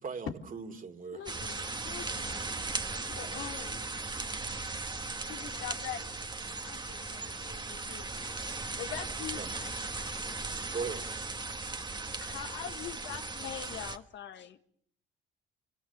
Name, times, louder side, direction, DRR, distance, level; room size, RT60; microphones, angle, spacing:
voice 1, 0.0-1.2 3.2-3.5 9.3-9.5 10.6-11.0, right 5 dB, 45° right, 3.0 m, -39 dB
voice 2, 1.1-2.5 3.1-3.9 5.2-6.1 6.6-9.7 12.2-13.5, left 10 dB, 90° left, 3.3 m, -43 dB
sound 1, 1.3-14.0, right 3 dB, 20° right, 1.7 m, -37 dB
voice 3, 13.2-14.6, left 9 dB, 65° left, 1.8 m, -43 dB
28.5 x 24.5 x 7.1 m
cardioid pair, 90°, 20 cm